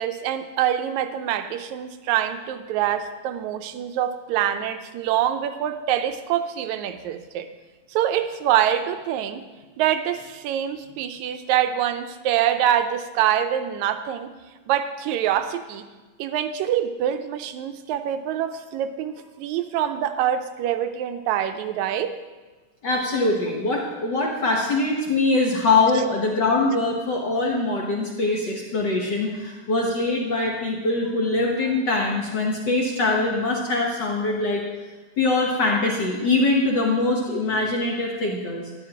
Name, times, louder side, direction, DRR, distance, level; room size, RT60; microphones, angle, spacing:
voice 1, 0.0-7.5 7.9-9.5 9.8-14.3 14.7-15.8 16.2-22.1, right 10 dB, 80° right, 10 dB, 1.9 m, -25 dB
voice 2, 22.8-34.6 35.2-38.6, left 2 dB, 70° left, -1 dB, 1.0 m, -23 dB
11.5 x 11.0 x 2.9 m, 1.3 s
omnidirectional pair, 3.3 m